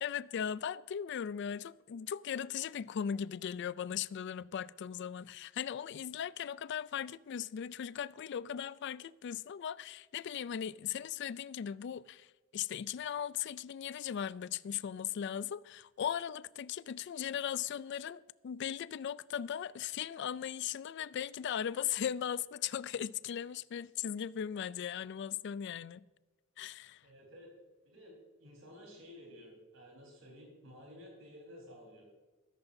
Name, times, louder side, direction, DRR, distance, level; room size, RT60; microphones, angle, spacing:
voice 1, 0.0-12.3 12.5-26.0 26.6-27.0, left 9 dB, 60° left, 0.3 m, -38 dB
voice 2, 27.0-27.5 27.8-32.1, equal, 75° right, 4.2 m, -53 dB
14.5 x 13.5 x 2.7 m
head